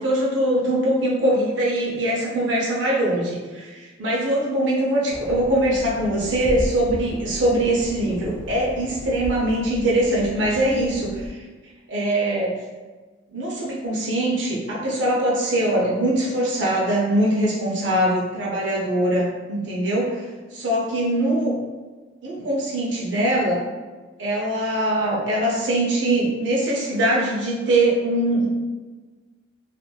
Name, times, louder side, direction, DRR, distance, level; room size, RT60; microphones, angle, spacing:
voice 1, 0.0-3.7 4.0-11.4 11.9-12.6 13.3-20.3 20.5-21.6 22.2-23.6 24.2-28.5, right 1 dB, 70° right, -4 dB, 0.6 m, -22 dB
sound 1, 5.1-11.3, equal, 5° right, 0.3 m, -35 dB
2.9 x 2.5 x 2.2 m, 1.3 s
head